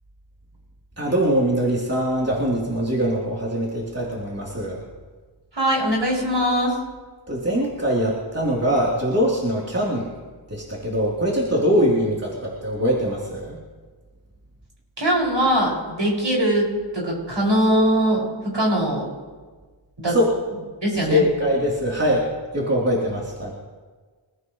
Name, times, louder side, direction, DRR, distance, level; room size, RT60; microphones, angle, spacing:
voice 1, 1.0-4.8 7.3-10.1 10.5-13.6 20.1-20.3 21.1-22.3 22.5-23.5, equal, 30° right, -5 dB, 3.5 m, -22 dB
voice 2, 5.5-6.8 15.0-16.7 16.9-19.0 20.0-20.2 20.8-21.2, right 1 dB, 60° right, -4 dB, 6.3 m, -21 dB
27.5 x 15.5 x 3.2 m, 1.4 s
wide cardioid pair, 50°, 49 cm